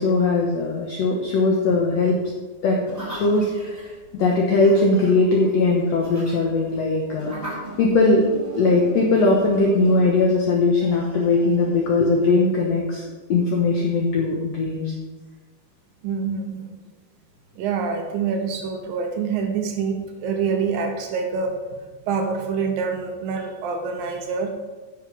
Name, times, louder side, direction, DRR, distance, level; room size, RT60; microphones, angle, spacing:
voice 1, 0.0-2.2 2.6-2.8 3.1-8.2 8.5-13.0 13.3-14.9, left 3 dB, 75° left, 0 dB, 1.5 m, -20 dB
sound 1, 2.9-12.5, right 1 dB, 5° right, 2.1 m, -39 dB
voice 2, 16.0-16.7 17.6-21.8 22.1-24.5, right 5 dB, 75° right, 4 dB, 2.5 m, -26 dB
10.0 x 6.6 x 5.3 m, 1.3 s
omnidirectional pair, 4.4 m